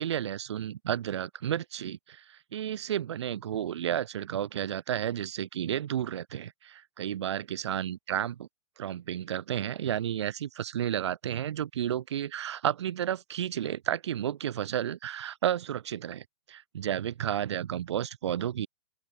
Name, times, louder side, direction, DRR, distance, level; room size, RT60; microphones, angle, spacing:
voice 1, 0.0-8.4 8.8-18.7, right 10 dB, 70° right, 0.4 m, -32 dB
open air
figure-of-eight pair, 110°, 15 cm